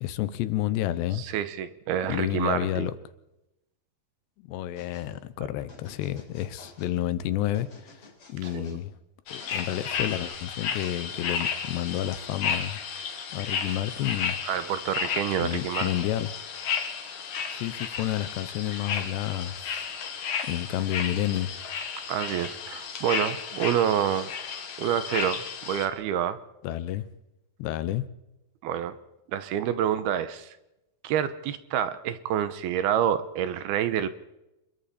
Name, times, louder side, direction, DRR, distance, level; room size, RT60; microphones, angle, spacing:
voice 1, 0.0-1.2 2.1-3.0 4.4-8.9 9.3-12.8 13.3-14.4 15.4-16.3 17.5-19.8 20.4-21.5 26.6-27.1 27.6-28.1, left 13 dB, 85° left, 3.1 m, -30 dB
voice 2, 1.1-2.9 8.4-8.8 14.5-15.9 22.1-26.4 28.6-29.0 29.3-30.6 31.0-34.1, right 10 dB, 75° right, 2.7 m, -28 dB
sound 1, 4.8-5.1 5.7-7.0 7.5-8.8 9.4-10.3, left 3 dB, 35° left, 4.7 m, -52 dB
sound 2, 9.3-25.9, left 7 dB, 55° left, 2.8 m, -33 dB
27.5 x 22.5 x 4.3 m
omnidirectional pair, 4.9 m